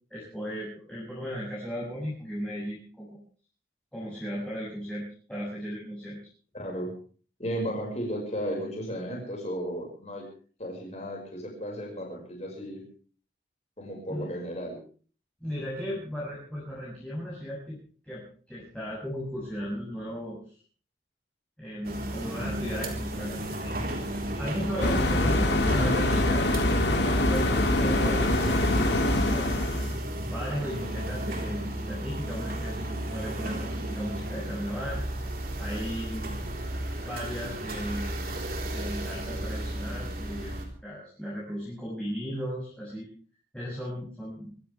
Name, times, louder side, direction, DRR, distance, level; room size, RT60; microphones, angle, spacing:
voice 1, 0.1-3.2 3.9-6.2 14.1-14.3 15.4-17.8 18.0-20.4 21.6-23.8 24.4-26.5 27.3-29.5 30.3-32.8 33.1-35.0 35.6-36.4 37.0-38.2 38.7-40.6 40.8-43.1 43.5-44.5, equal, 5° left, -8 dB, 7.2 m, -36 dB
voice 2, 6.5-6.9 7.4-10.2 10.6-12.8 13.8-14.8 36.2-36.6, equal, 35° left, 0 dB, 5.8 m, -34 dB
sound 1, 21.8-40.6, right 1 dB, 50° right, 4.1 m, -33 dB
sound 2, 24.8-30.0, left 1 dB, 65° left, 2.3 m, -24 dB
25.0 x 16.0 x 3.5 m, 0.42 s
head